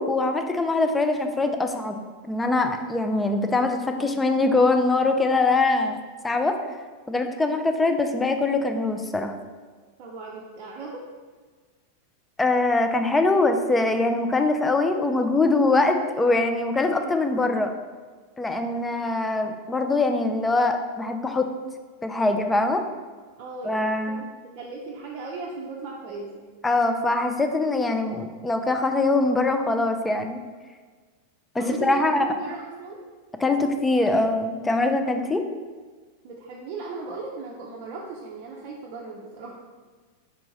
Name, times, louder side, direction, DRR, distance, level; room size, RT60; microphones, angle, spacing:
voice 1, 0.0-6.0 6.2-6.6 7.1-9.3 12.4-17.7 18.4-21.5 22.0-22.8 23.6-24.2 26.6-30.4 31.5-32.3 33.4-35.4, left 2 dB, 10° left, 6 dB, 0.4 m, -23 dB
voice 2, 10.0-11.0 23.4-24.3 24.5-26.4 31.6-33.0 36.2-39.6, right 4 dB, 40° right, -3 dB, 0.6 m, -36 dB
4.9 x 3.4 x 3.1 m, 1.4 s
figure-of-eight pair, 90°, 0 cm